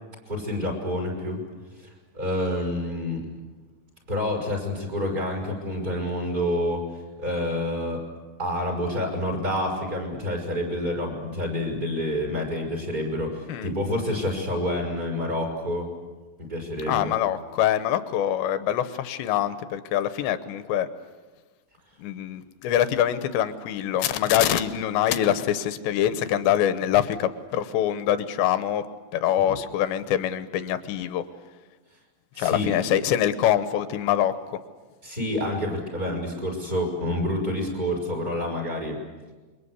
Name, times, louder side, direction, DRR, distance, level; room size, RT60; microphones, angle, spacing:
voice 1, 0.3-1.4 1.8-3.2 4.1-6.8 7.2-8.1 8.4-15.9 16.4-17.1 29.4-29.6 32.3-32.7 35.0-39.0, left 1 dB, 15° right, 1 dB, 5.8 m, -28 dB
voice 2, 16.9-20.9 22.0-28.8 29.1-31.2 32.4-34.6, left 11 dB, 75° left, 12 dB, 2.9 m, -24 dB
28.0 x 23.0 x 8.3 m, 1.3 s
omnidirectional pair, 5.7 m